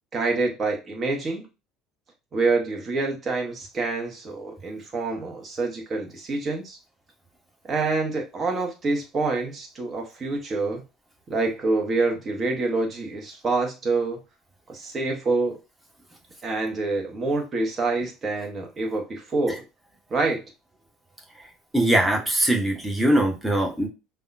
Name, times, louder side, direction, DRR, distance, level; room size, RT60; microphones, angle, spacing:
voice 1, 0.1-1.5 2.3-6.8 7.7-10.8 11.3-14.2 14.7-15.6 16.4-19.6 20.1-20.4, right 3 dB, 35° right, 1.0 m, -26 dB
voice 2, 21.7-23.9, right 1 dB, 5° right, 1.0 m, -22 dB
5.3 x 2.3 x 2.5 m
hypercardioid pair, 65°, 0 cm